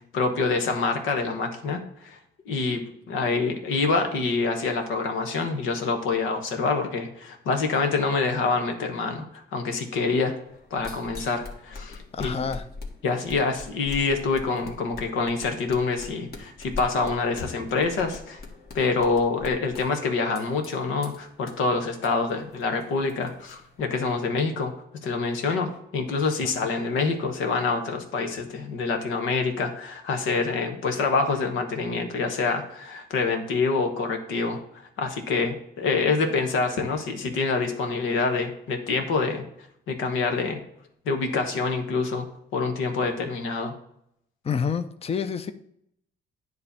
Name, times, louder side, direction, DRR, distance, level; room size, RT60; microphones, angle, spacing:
voice 1, 0.1-2.2 2.4-2.8 3.1-10.3 10.7-12.5 13.0-18.4 18.7-24.7 25.0-39.4 39.9-40.6 41.0-43.7, left 4 dB, 90° left, 5 dB, 1.4 m, -26 dB
sound 1, 10.5-24.2, left 3 dB, 50° left, 2.0 m, -43 dB
voice 2, 12.1-12.6 26.4-26.7 44.4-45.5, left 6 dB, 30° left, 10 dB, 0.6 m, -29 dB
9.7 x 3.3 x 6.8 m, 0.75 s
cardioid pair, 90°, 20 cm